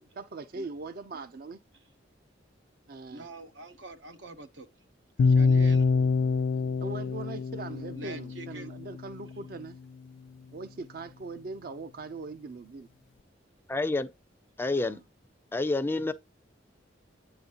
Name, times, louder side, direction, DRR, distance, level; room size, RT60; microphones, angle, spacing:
voice 1, 0.0-1.6 2.9-3.3 6.8-9.8 10.5-12.9 14.8-15.0, right 3 dB, 55° right, 0.5 m, -41 dB
voice 2, 3.1-4.7 5.2-5.9 7.9-8.7, right 2 dB, 80° right, 0.9 m, -44 dB
sound 1, 5.2-9.3, left 4 dB, 90° left, 0.3 m, -25 dB
voice 3, 13.7-14.1 14.6-15.0 15.5-16.1, left 2 dB, 10° left, 0.3 m, -28 dB
8.7 x 3.9 x 2.8 m
head